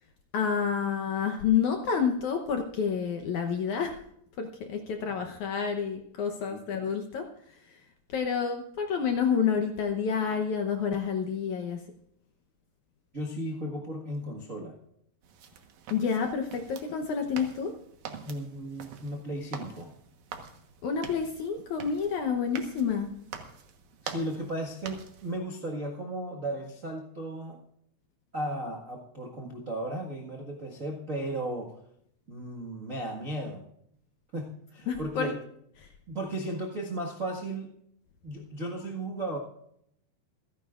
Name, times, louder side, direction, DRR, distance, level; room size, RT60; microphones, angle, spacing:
voice 1, 0.3-3.9 4.4-7.3 7.7-7.8 8.1-11.8 15.9-17.7 20.8-23.1 34.9-35.3 35.8-35.9, left 6 dB, 70° left, 5 dB, 1.8 m, -29 dB
voice 2, 13.1-14.8 18.2-19.9 24.0-27.6 28.3-31.8 32.3-33.6 34.3-35.4 36.1-37.7 38.2-39.4, right 1 dB, 75° right, -2 dB, 0.7 m, -35 dB
sound 1, 15.2-25.4, right 7 dB, 60° right, 2.3 m, -46 dB
27.5 x 10.5 x 2.5 m, 0.72 s
omnidirectional pair, 4.6 m